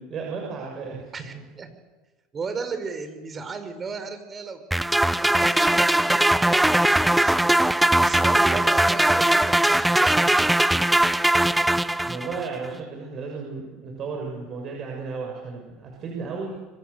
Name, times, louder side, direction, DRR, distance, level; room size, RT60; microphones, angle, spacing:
voice 1, 0.0-1.4 12.0-16.6, right 4 dB, 45° right, 0 dB, 6.7 m, -34 dB
voice 2, 1.1-1.7 2.3-4.6 5.2-7.4 8.0-10.3, right 4 dB, 30° right, 9 dB, 5.0 m, -35 dB
sound 1, 4.7-12.5, right 1 dB, 5° right, 0.8 m, -20 dB
26.0 x 25.5 x 7.0 m, 1.2 s
hypercardioid pair, 90°, 0 cm